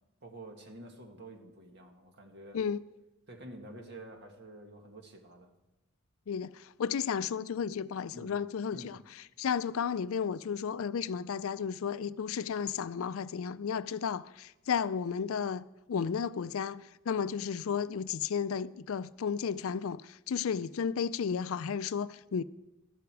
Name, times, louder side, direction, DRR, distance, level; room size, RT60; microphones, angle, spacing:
voice 1, 0.2-2.6 3.3-5.5 8.1-8.3 8.7-9.0, right 1 dB, 50° right, 1.8 m, -49 dB
voice 2, 6.3-9.0 9.4-22.4, left 7 dB, 65° left, 0.4 m, -33 dB
14.0 x 12.0 x 4.8 m
head